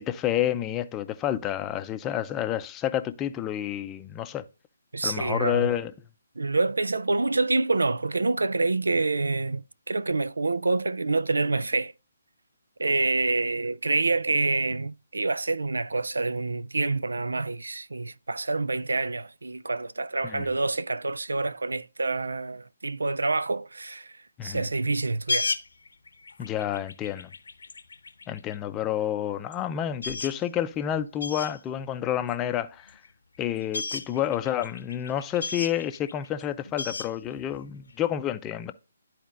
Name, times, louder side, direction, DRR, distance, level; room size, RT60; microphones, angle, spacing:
voice 1, 0.0-4.4 5.0-5.9 20.2-20.5 24.4-24.7 26.4-27.3 28.3-32.9 33.4-38.7, left 11 dB, 15° left, 0.5 m, -29 dB
voice 2, 4.9-5.7 6.4-11.9 12.8-24.1 24.4-25.5, right 3 dB, 80° right, 0.4 m, -27 dB
sound 1, 25.0-28.5 29.2-29.3 29.5-29.6 29.8-30.4 30.7-30.8 31.2-31.6 32.2-33.1 33.3-37.9, left 3 dB, 75° left, 0.9 m, -34 dB
12.0 x 4.2 x 2.5 m
figure-of-eight pair, 145°, 0 cm